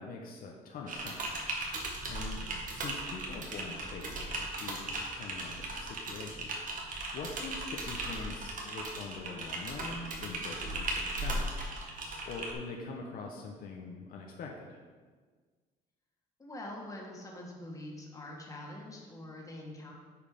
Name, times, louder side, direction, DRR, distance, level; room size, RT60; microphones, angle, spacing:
voice 1, 0.0-1.4 2.1-2.4 2.7-6.5 7.1-11.9 12.3-14.8, left 4 dB, 60° left, 0 dB, 1.0 m, -43 dB
Typing, 0.9-12.5, right 2 dB, 50° right, 1.7 m, -37 dB
voice 2, 16.4-19.9, left 1 dB, 20° left, -2 dB, 1.9 m, -45 dB
8.6 x 4.9 x 5.1 m, 1.5 s
cardioid pair, 110°, 17 cm